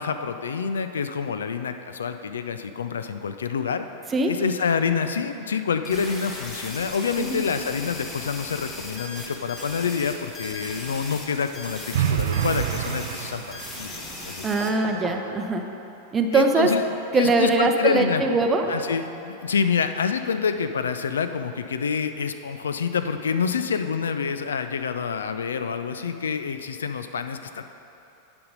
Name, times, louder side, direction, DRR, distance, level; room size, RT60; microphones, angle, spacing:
voice 1, 0.0-3.9 4.3-11.8 12.1-14.5 14.9-15.0 16.3-16.8 17.1-18.2 18.7-27.6, left 6 dB, 70° left, 9 dB, 0.4 m, -27 dB
sound 1, 5.8-14.7, left 2 dB, 25° left, 1.3 m, -37 dB
sound 2, 11.9-14.0, right 10 dB, 55° right, 0.3 m, -27 dB
voice 2, 14.4-15.6 16.1-16.7 17.1-18.6, right 3 dB, 20° right, 4 dB, 0.6 m, -22 dB
sound 3, 14.6-15.3 18.2-18.9 20.5-20.6, equal, ahead, 1.3 m, -37 dB
9.6 x 5.2 x 5.3 m, 2.8 s
figure-of-eight pair, 90°, 0 cm